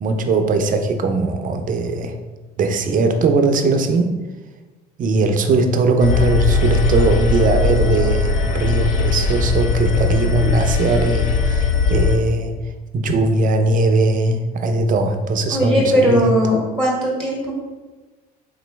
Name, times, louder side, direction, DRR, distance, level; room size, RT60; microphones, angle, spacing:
voice 1, 0.0-2.1 2.6-4.1 5.0-12.5 12.9-16.2, right 3 dB, 45° right, 6 dB, 0.5 m, -19 dB
sound 1, 6.0-12.2, left 4 dB, 80° left, 0.6 m, -19 dB
voice 2, 15.5-17.5, equal, 5° left, -3 dB, 1.3 m, -18 dB
3.7 x 3.0 x 3.3 m, 1.2 s
supercardioid pair, 80°, 19 cm